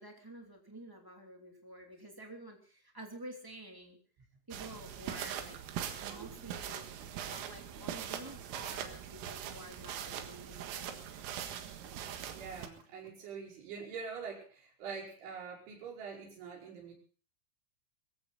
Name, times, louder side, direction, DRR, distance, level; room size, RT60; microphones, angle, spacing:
voice 1, 0.0-4.0 4.5-5.6 5.9-11.3, right 1 dB, 20° right, 2 dB, 0.6 m, -50 dB
sound 1, 4.5-12.7, right 9 dB, 80° right, 4.3 m, -42 dB
sound 2, 5.6-13.1, right 5 dB, 50° right, 3.6 m, -58 dB
voice 2, 12.3-16.9, right 5 dB, 65° right, -2 dB, 7.6 m, -44 dB
23.0 x 15.5 x 4.0 m, 0.41 s
omnidirectional pair, 5.8 m